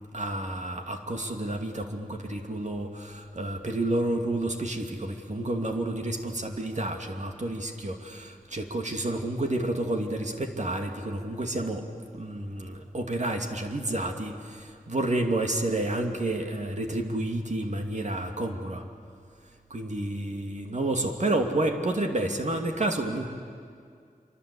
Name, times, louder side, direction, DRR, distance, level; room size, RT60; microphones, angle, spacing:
voice 1, 0.1-11.9 12.1-18.8 19.7-23.3, right 1 dB, 50° right, 4 dB, 2.5 m, -30 dB
27.0 x 24.0 x 8.5 m, 2.2 s
wide cardioid pair, 75°, 15 cm